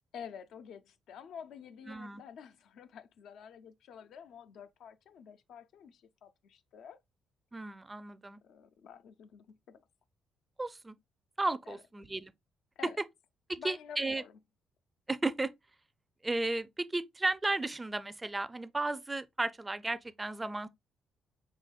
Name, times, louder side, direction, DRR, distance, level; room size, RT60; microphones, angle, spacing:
voice 1, 0.1-7.0 8.4-9.8 11.7-11.8 12.8-13.0 13.6-14.4, left 7 dB, 75° left, 0.4 m, -49 dB
voice 2, 1.9-2.2 7.5-8.4 10.6-10.9 11.4-12.3 13.5-14.2 15.1-15.5 16.2-20.7, right 2 dB, 20° right, 0.4 m, -34 dB
4.9 x 3.6 x 2.3 m
cardioid pair, 90°, 0 cm